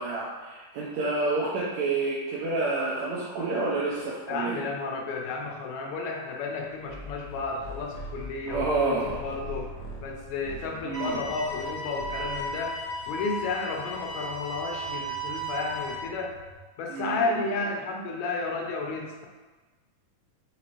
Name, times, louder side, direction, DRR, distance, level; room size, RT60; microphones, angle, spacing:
voice 1, 0.0-4.6 8.4-9.2 10.8-11.2 16.9-17.4, right 3 dB, 75° right, -6 dB, 1.7 m, -29 dB
voice 2, 4.3-9.7 10.0-12.8 13.1-16.4 16.8-19.3, left 3 dB, 80° left, 1 dB, 1.9 m, -32 dB
sound 1, 6.5-16.5, right 2 dB, 60° right, 2.3 m, -51 dB
sound 2, 6.8-12.6, equal, 65° left, 1.3 m, -42 dB
sound 3, 10.9-15.9, equal, 35° right, 1.5 m, -35 dB
5.1 x 3.2 x 2.9 m, 1.3 s
omnidirectional pair, 3.3 m